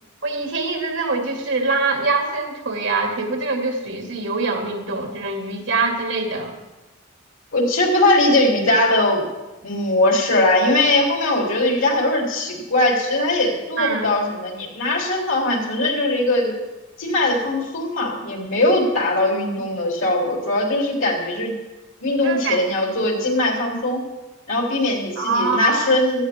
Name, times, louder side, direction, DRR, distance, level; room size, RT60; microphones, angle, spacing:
voice 1, 0.2-6.5 13.8-14.1 22.2-22.6 25.2-25.9, right 3 dB, 65° right, 2 dB, 2.5 m, -24 dB
voice 2, 7.5-9.2 9.6-16.5 17.0-21.5 22.0-24.0 24.5-26.3, left 1 dB, 85° left, 0 dB, 3.6 m, -20 dB
17.0 x 14.0 x 3.6 m, 1.1 s
head